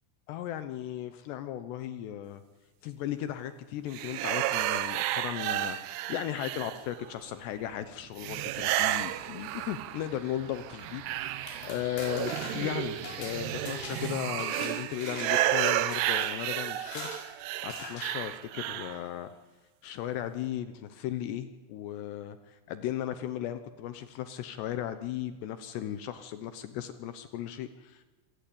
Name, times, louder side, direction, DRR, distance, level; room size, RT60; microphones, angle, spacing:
voice 1, 0.3-2.4 2.8-17.1 17.6-19.3 19.8-28.0, left 11 dB, 75° left, 11 dB, 2.6 m, -36 dB
sound 1, 3.9-7.1 8.2-10.2 10.6-19.0, right 14 dB, 80° right, 2.4 m, -32 dB
sound 2, 6.8-13.9, right 8 dB, 65° right, 2.9 m, -48 dB
sound 3, 11.3-14.7 15.0-15.5 15.9-16.3 16.8-17.2 17.7-18.1, left 3 dB, 55° left, 6.9 m, -42 dB
26.5 x 17.5 x 8.7 m, 1.2 s
omnidirectional pair, 5.8 m